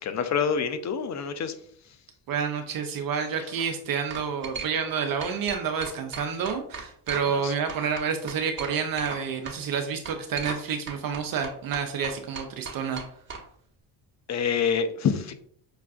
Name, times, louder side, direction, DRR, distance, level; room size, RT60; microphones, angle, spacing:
voice 1, 0.0-1.5 3.4-3.5 7.3-7.5 14.3-15.3, left 6 dB, 40° left, 10 dB, 0.5 m, -27 dB
voice 2, 2.3-13.0, right 6 dB, 50° right, 5 dB, 0.6 m, -29 dB
sound 1, 3.3-3.6 4.1-4.9 5.2-7.4 7.7-9.2 9.4-9.6 10.0-10.6 10.9-13.4, right 5 dB, 25° right, 0.9 m, -37 dB
5.4 x 2.3 x 2.4 m, 0.62 s
supercardioid pair, 80°, 45 cm